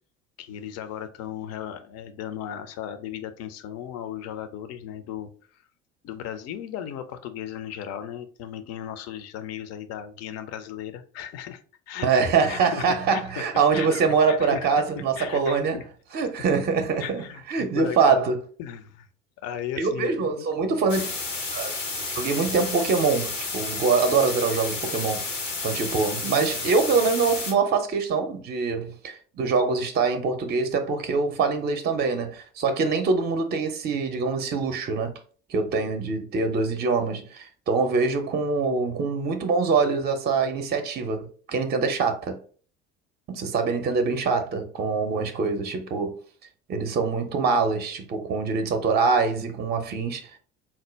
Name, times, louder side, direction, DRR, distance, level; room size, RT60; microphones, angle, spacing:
voice 1, 0.4-5.3 6.0-11.6 11.9-13.4 13.7-14.7 15.2-15.8 17.0-18.3 18.6-19.1 19.4-20.4, left 10 dB, 45° left, 0.5 m, -36 dB
voice 2, 12.0-15.8 16.1-18.4 19.8-21.1 21.5-25.2 25.6-35.1 35.5-42.4 43.3-46.2 46.7-50.3, right 4 dB, 25° right, 0.6 m, -24 dB
sound 1, 20.9-27.5, left 3 dB, 85° left, 0.9 m, -31 dB
4.4 x 2.1 x 3.1 m
figure-of-eight pair, 60°, 36 cm